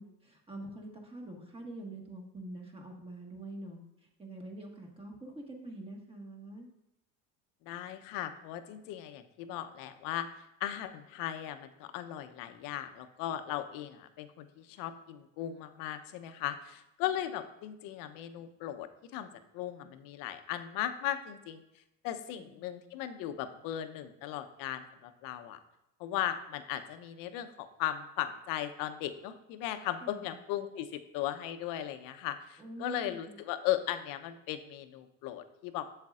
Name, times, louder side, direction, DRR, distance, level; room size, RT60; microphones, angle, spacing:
voice 1, 0.0-6.7 22.3-22.5 30.0-30.4 32.6-33.4, right 1 dB, 15° right, 1 dB, 1.5 m, -45 dB
voice 2, 7.7-10.3 10.6-21.6 22.0-25.6 26.0-35.9, left 12 dB, 55° left, 10 dB, 0.8 m, -37 dB
7.6 x 7.2 x 2.5 m, 0.88 s
hypercardioid pair, 90°, 40 cm